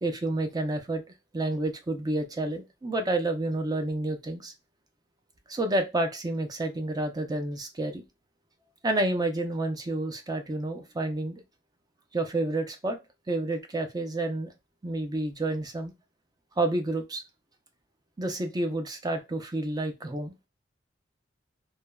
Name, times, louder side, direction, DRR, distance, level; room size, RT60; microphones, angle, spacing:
voice 1, 0.0-1.0 1.3-4.5 5.5-8.0 8.8-11.4 12.1-13.0 13.3-14.5 14.8-15.9 16.6-17.2 18.2-20.3, right 2 dB, 20° right, 0.4 m, -29 dB
3.3 x 2.1 x 2.2 m
head